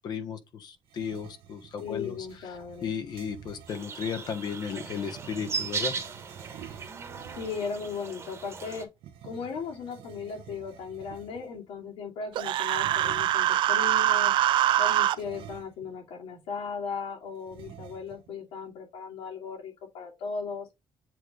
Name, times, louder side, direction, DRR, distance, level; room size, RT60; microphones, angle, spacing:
voice 1, 0.0-2.2 2.8-5.9, left 7 dB, 50° left, 1.2 m, -35 dB
sound 1, 0.8-3.8 4.6-7.8 9.0-11.6 12.7-13.5 15.2-16.1 16.4-16.5 17.5-18.3, right 10 dB, 90° right, 1.0 m, -48 dB
voice 2, 1.8-2.9 7.3-8.9 9.2-14.3 14.8-20.7, left 5 dB, 85° left, 2.6 m, -37 dB
sound 2, 3.7-8.8, right 5 dB, 30° right, 1.3 m, -37 dB
Human voice, 12.4-15.2, right 12 dB, 65° right, 0.4 m, -24 dB
7.6 x 3.3 x 3.8 m
cardioid pair, 150°, 9 cm